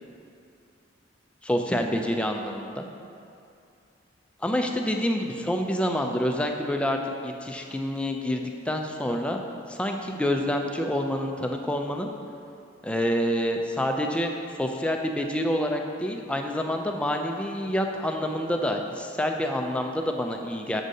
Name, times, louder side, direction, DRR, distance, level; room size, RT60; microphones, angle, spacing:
voice 1, 1.4-2.9 4.4-9.4 9.7-12.1 12.8-20.8, equal, 5° left, 3 dB, 0.3 m, -27 dB
7.7 x 6.2 x 2.7 m, 2.5 s
head